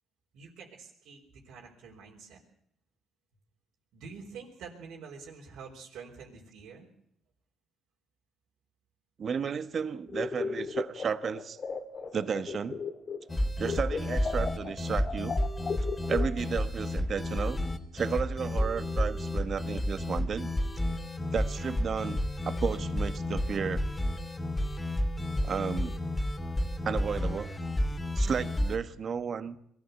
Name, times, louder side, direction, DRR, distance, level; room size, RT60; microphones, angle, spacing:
voice 1, 0.3-1.2 1.4-2.4 3.9-6.9, right 5 dB, 80° right, -3 dB, 4.5 m, -47 dB
voice 2, 9.2-11.6 12.1-12.8 13.6-15.4 16.1-17.6 17.9-20.5 21.3-22.2 22.4-23.8 25.4-25.9 26.8-27.6 28.1-29.6, right 6 dB, 45° right, 13 dB, 1.3 m, -33 dB
sound 1, 10.1-13.3 13.6-16.7, left 5 dB, 40° left, 2.2 m, -36 dB
sound 2, 13.3-28.8, left 1 dB, 20° left, 2.4 m, -31 dB
22.5 x 14.5 x 8.2 m, 0.73 s
cardioid pair, 95°, 0 cm